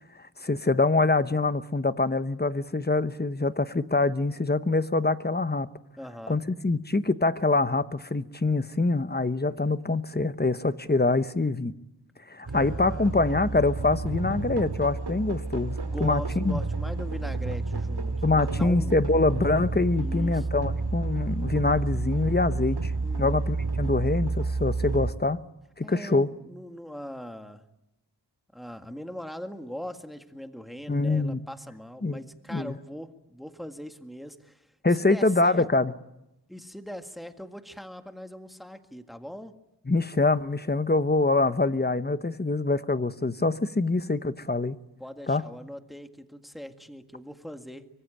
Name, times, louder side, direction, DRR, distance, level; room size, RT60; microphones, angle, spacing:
voice 1, 0.4-5.7 6.3-11.7 12.3-16.6 18.2-22.9 23.2-25.4 25.8-26.3 30.9-31.4 32.0-32.2 32.5-32.7 34.8-35.9 39.9-44.8 45.3-45.4, left 3 dB, 25° left, 12 dB, 1.0 m, -25 dB
voice 2, 6.0-6.4 12.4-13.4 15.8-19.0 20.0-20.5 23.0-23.4 25.8-27.6 28.5-34.7 35.0-35.7 36.5-39.5 45.0-47.9, equal, ahead, 6 dB, 1.8 m, -41 dB
sound 1, 12.5-25.1, right 3 dB, 65° right, 2.4 m, -30 dB
24.5 x 23.5 x 9.1 m, 0.90 s
wide cardioid pair, 60°, 43 cm